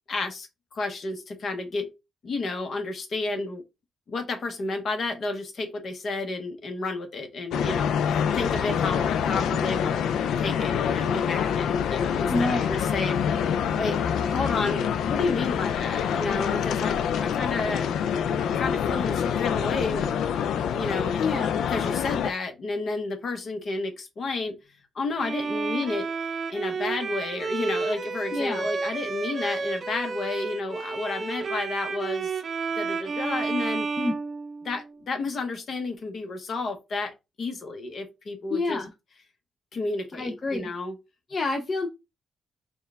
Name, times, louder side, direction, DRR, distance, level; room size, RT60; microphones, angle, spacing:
voice 1, 0.1-1.9 2.2-3.6 4.1-10.0 10.4-13.2 13.8-17.9 18.5-20.1 20.6-21.1 21.7-24.5 24.9-26.1 26.5-32.3 32.8-33.9 34.6-38.8 39.7-40.9, left 3 dB, 50° left, 0.9 m, -31 dB
sound 1, 7.5-22.3, left 8 dB, 85° left, 0.3 m, -26 dB
voice 2, 12.3-12.7 21.2-21.6 28.3-28.7 34.0-34.1 38.5-38.9 40.1-40.7 41.3-41.9, left 3 dB, 30° left, 0.6 m, -27 dB
Bowed string instrument, 25.2-35.0, right 4 dB, 40° right, 0.5 m, -31 dB
4.4 x 2.3 x 3.3 m
cardioid pair, 120°, 0 cm